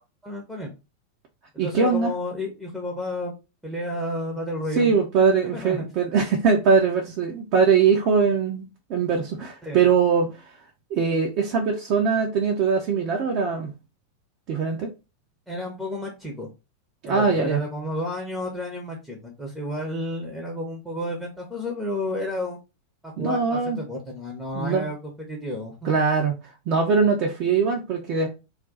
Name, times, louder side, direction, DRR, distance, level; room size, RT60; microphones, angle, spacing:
voice 1, 0.2-0.7 1.5-3.3 3.6-5.0 5.5-5.9 9.6-9.8 15.5-16.5 17.0-22.6 23.0-25.0 25.3-25.8, left 1 dB, ahead, -1 dB, 0.7 m, -31 dB
voice 2, 1.6-2.1 4.8-8.6 8.9-10.3 10.9-13.7 14.5-14.9 17.0-17.6 23.2-23.8 24.5-24.9 25.8-26.3 26.7-28.3, right 5 dB, 40° right, 0 dB, 0.5 m, -21 dB
2.4 x 2.2 x 3.9 m, 0.28 s
figure-of-eight pair, 90°, 0 cm